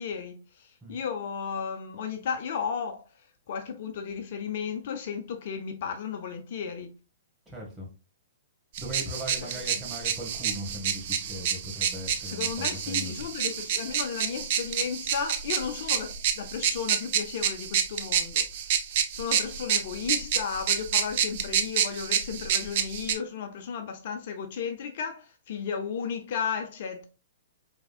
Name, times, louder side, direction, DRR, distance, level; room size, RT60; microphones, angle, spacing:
voice 1, 0.0-3.1 3.5-6.9 9.4-9.7 12.2-18.8 19.1-27.1, left 6 dB, 55° left, 0.6 m, -34 dB
voice 2, 7.4-7.9 8.8-13.1, equal, 10° right, 1.8 m, -38 dB
sound 1, 8.8-23.1, right 8 dB, 50° right, 0.6 m, -29 dB
4.9 x 3.5 x 2.4 m
figure-of-eight pair, 115°, 0 cm